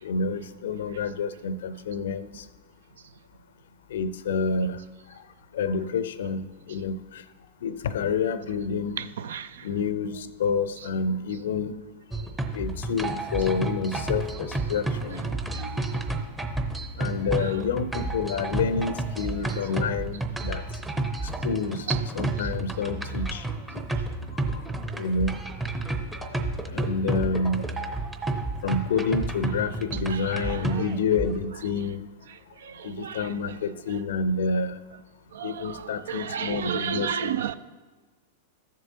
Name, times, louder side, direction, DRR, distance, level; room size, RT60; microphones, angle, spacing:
voice 1, 0.0-2.4 3.9-4.8 5.5-7.2 7.6-9.0 9.6-11.8 12.5-15.2 17.0-20.6 21.4-21.9 22.1-23.5 23.7-23.9 24.5-24.6 25.0-25.3 26.2-26.4 26.7-28.0 28.6-32.1 32.8-34.8 35.4-37.4, left 4 dB, 60° left, 0.5 m, -28 dB
voice 2, 9.0-9.4 15.1-15.3 15.6-15.7 17.4-17.6 21.9-22.0 30.1-30.7 33.0-33.3 35.4-35.8 36.1-37.5, right 8 dB, 65° right, 0.4 m, -32 dB
sound 1, 12.1-31.5, right 2 dB, 10° right, 0.8 m, -31 dB
13.5 x 7.5 x 2.8 m
figure-of-eight pair, 95°, 0 cm